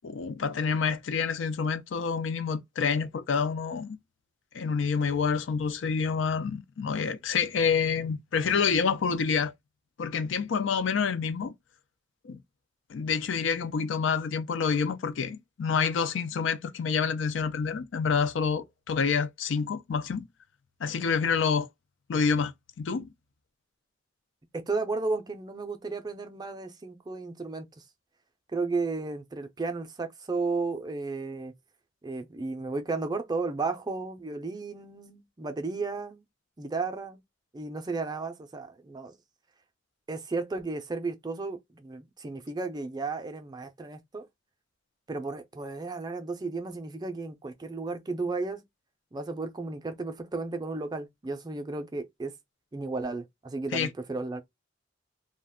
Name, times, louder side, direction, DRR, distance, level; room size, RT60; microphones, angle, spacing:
voice 1, 0.0-4.0 4.5-9.5 10.0-11.5 12.2-12.4 12.9-20.3 20.8-21.7 22.1-22.5 22.8-23.1 53.7-53.9, left 5 dB, 75° left, 0.4 m, -28 dB
voice 2, 24.5-27.7 28.5-31.5 32.0-36.2 36.6-37.2 37.5-39.1 40.1-44.3 45.1-48.6 49.1-52.3 52.7-54.4, right 3 dB, 20° right, 0.4 m, -33 dB
2.4 x 2.2 x 3.5 m
head